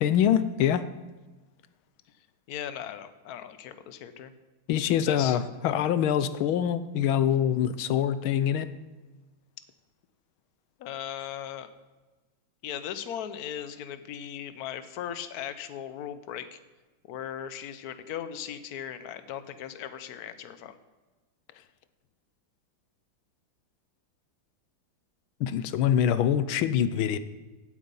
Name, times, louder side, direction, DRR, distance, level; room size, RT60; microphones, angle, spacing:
voice 1, 0.0-0.8 4.7-8.7 25.4-27.2, left 9 dB, 90° left, 13 dB, 1.6 m, -24 dB
voice 2, 2.5-4.3 5.1-5.4 10.8-11.7 12.6-16.6 17.1-20.7, left 10 dB, 60° left, 11 dB, 1.2 m, -38 dB
16.0 x 8.4 x 5.4 m, 1.2 s
omnidirectional pair, 2.2 m